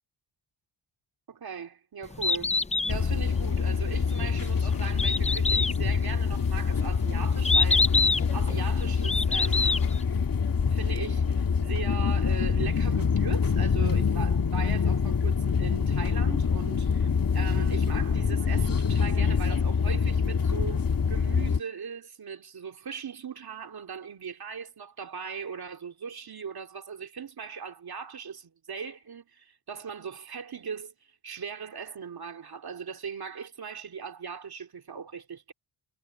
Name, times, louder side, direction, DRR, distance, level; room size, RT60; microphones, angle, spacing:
voice 1, 1.3-2.6 2.9-7.9 8.3-9.9 10.7-20.8 21.1-30.9 31.2-35.5, right 6 dB, 55° right, 2.9 m, -39 dB
Bird, 2.0-10.0, left 3 dB, 15° left, 0.6 m, -27 dB
sound 1, 2.9-21.6, left 6 dB, 50° left, 2.4 m, -25 dB
wide cardioid pair, 135°, 45 cm